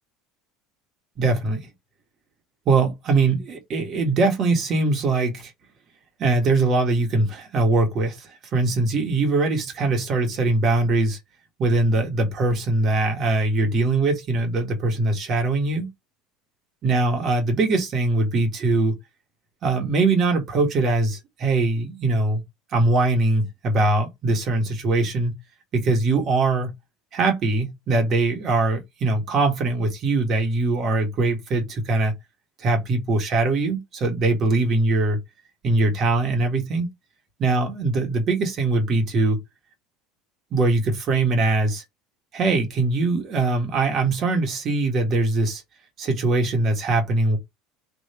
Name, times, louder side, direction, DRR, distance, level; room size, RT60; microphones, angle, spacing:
voice 1, 1.2-1.7 2.6-5.5 6.2-11.2 11.6-15.9 16.8-19.0 19.6-22.4 22.7-25.3 25.7-26.7 27.1-32.1 32.6-35.2 35.6-36.9 37.4-39.4 40.5-41.8 42.3-45.6 46.0-47.4, right 3 dB, 40° right, 1.7 m, -22 dB
3.4 x 3.0 x 4.4 m
supercardioid pair, 125°, 0 cm